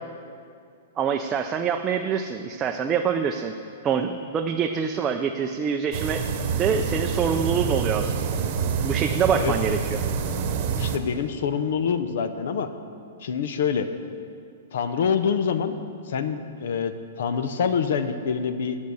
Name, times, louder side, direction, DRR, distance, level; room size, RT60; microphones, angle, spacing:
voice 1, 1.0-3.5 3.8-6.3 6.6-8.4 8.8-10.0, right 7 dB, 20° right, 3 dB, 0.4 m, -25 dB
Waterfall Sound Effect, 5.9-11.0, right 6 dB, 45° right, 1.0 m, -27 dB
voice 2, 10.8-12.7 13.2-13.9 14.7-15.7 16.1-18.8, left 6 dB, 70° left, 10 dB, 0.7 m, -26 dB
11.5 x 6.4 x 7.0 m, 2.4 s
hypercardioid pair, 150°, 0 cm